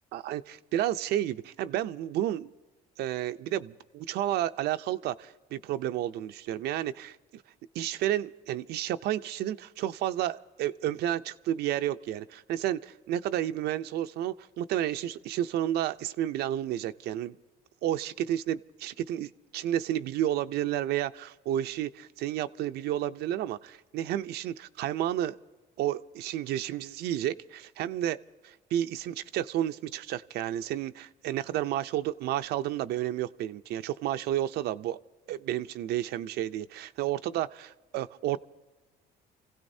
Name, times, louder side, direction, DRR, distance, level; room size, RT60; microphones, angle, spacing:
voice 1, 0.1-2.5 3.0-7.4 7.7-17.4 17.8-25.4 25.8-28.2 28.4-35.0 35.3-38.4, right 12 dB, 75° right, 10 dB, 0.5 m, -31 dB
29.0 x 16.5 x 2.7 m, 1.2 s
cardioid pair, 110°, 17 cm